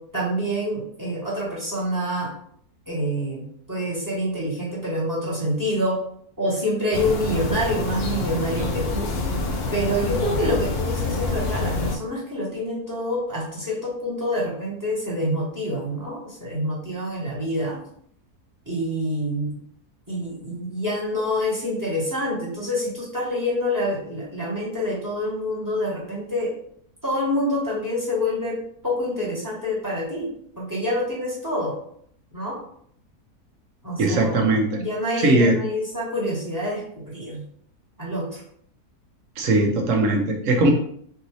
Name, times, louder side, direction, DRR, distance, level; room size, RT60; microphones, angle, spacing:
voice 1, 0.1-2.3 2.9-6.0 6.4-9.1 9.7-17.8 18.7-19.5 20.1-26.5 27.0-30.3 30.6-31.8 32.3-32.6 33.8-34.4 34.8-37.4 38.0-38.4, equal, 15° right, -5 dB, 1.1 m, -27 dB
sound 1, 6.9-12.0, left 3 dB, 60° left, 0.6 m, -27 dB
voice 2, 34.0-34.8 35.2-35.6 39.4-40.7, right 2 dB, 60° right, 2 dB, 1.0 m, -19 dB
4.6 x 2.6 x 3.1 m, 0.65 s
omnidirectional pair, 1.7 m